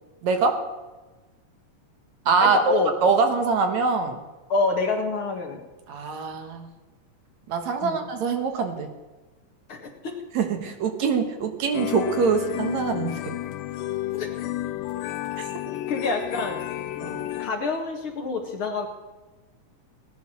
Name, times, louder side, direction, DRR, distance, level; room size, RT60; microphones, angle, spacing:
voice 1, 0.2-0.6 2.3-4.2 5.9-6.7 7.5-8.9 10.3-13.2 17.0-17.3, right 5 dB, 65° right, 6 dB, 2.6 m, -24 dB
voice 2, 2.4-2.9 4.5-5.6 7.8-8.0 9.7-10.2 14.1-14.3 15.9-16.6 17.4-18.9, left 3 dB, 50° left, 3 dB, 2.0 m, -27 dB
sound 1, 11.7-17.5, left 14 dB, 85° left, 2.5 m, -31 dB
17.5 x 10.5 x 6.3 m, 1.2 s
omnidirectional pair, 3.8 m